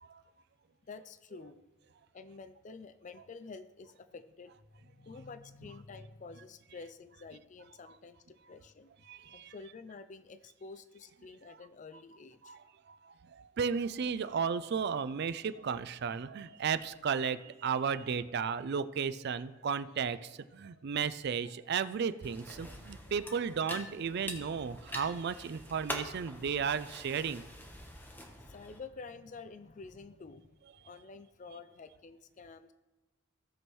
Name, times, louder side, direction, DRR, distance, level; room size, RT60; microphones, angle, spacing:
voice 1, 0.9-1.6 2.1-4.5 4.8-8.9 9.3-12.6 28.4-30.5 30.8-32.7, left 4 dB, 40° left, 11 dB, 0.4 m, -49 dB
voice 2, 9.1-9.5 12.4-12.6 12.9-27.4, right 6 dB, 55° right, 13 dB, 0.4 m, -34 dB
sound 1, 22.2-28.8, left 1 dB, 10° left, 1.1 m, -45 dB
16.5 x 6.1 x 3.1 m, 1.1 s
head